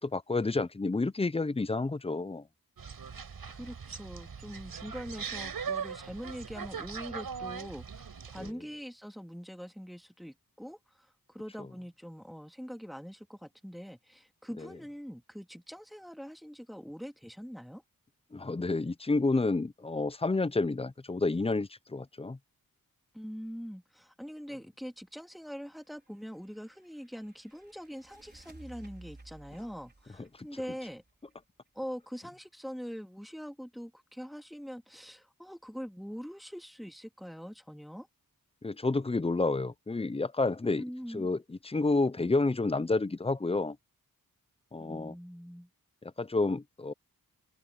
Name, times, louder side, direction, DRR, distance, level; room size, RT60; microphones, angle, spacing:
voice 1, 0.0-2.4 8.4-8.5 14.6-14.7 18.3-22.4 38.6-40.8 41.1-43.8 44.7-45.1 46.0-46.9, left 3 dB, 15° left, 0.6 m, -30 dB
sound 1, 2.8-8.5, right 6 dB, 75° right, 4.9 m, -40 dB
voice 2, 3.5-17.8 23.1-31.0 31.7-38.1 40.8-41.3 44.8-45.7, equal, ahead, 2.6 m, -43 dB
sound 2, 25.9-31.7, right 2 dB, 30° right, 4.4 m, -55 dB
open air
wide cardioid pair, 95°, 36 cm